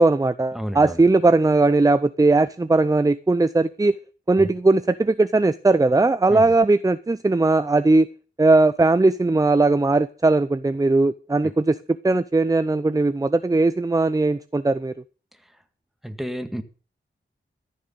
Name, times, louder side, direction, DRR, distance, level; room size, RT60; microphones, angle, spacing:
voice 1, 0.0-4.0 4.3-8.1 8.4-11.8 12.0-14.9, right 2 dB, 15° right, 14 dB, 0.5 m, -19 dB
voice 2, 0.5-1.1 4.4-4.5 6.3-6.5 11.4-11.5 15.3-15.6 16.0-16.6, equal, ahead, 8 dB, 1.7 m, -32 dB
14.0 x 6.6 x 8.1 m, 0.39 s
wide cardioid pair, 85°, 21 cm